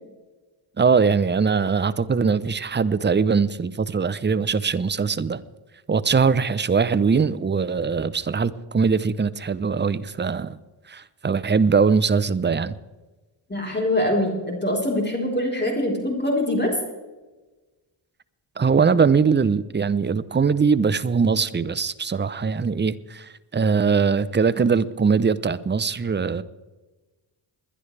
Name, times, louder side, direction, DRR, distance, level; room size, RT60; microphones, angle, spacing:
voice 1, 0.8-5.4 5.9-10.6 10.9-12.7 18.6-26.4, right 5 dB, 20° right, 0.6 m, -21 dB
voice 2, 13.5-16.7, left 1 dB, 20° left, 4.0 m, -23 dB
21.5 x 11.0 x 3.4 m
cardioid pair, 70°, 50 cm